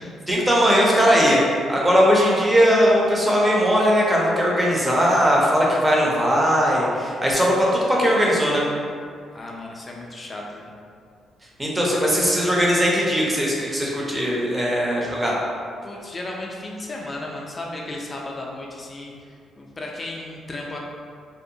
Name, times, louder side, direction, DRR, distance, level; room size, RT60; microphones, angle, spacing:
voice 1, 0.3-1.4 1.7-8.6 11.6-15.3, equal, 15° right, -4 dB, 0.6 m, -19 dB
voice 2, 9.3-10.7 15.8-20.8, left 2 dB, 30° left, -1 dB, 0.4 m, -35 dB
2.7 x 2.1 x 2.6 m, 2.2 s
cardioid pair, 90°, 0 cm